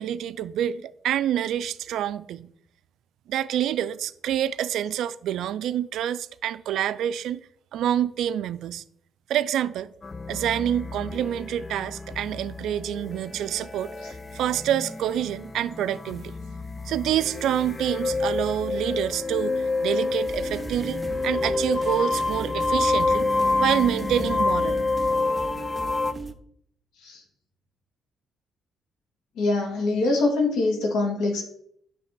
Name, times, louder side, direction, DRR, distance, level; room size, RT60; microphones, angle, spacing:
voice 1, 0.0-2.5 3.3-7.4 7.7-8.8 9.3-9.9 10.3-16.3 16.9-23.3 23.6-24.8, right 10 dB, 80° right, 0.4 m, -27 dB
sound 1, 10.0-26.1, left 3 dB, 25° left, 0.6 m, -28 dB
sound 2, 20.3-26.3, right 3 dB, 20° right, 0.7 m, -38 dB
voice 2, 29.4-31.4, left 2 dB, 80° left, 1.8 m, -24 dB
9.6 x 3.3 x 6.8 m
cardioid pair, 90°, 0 cm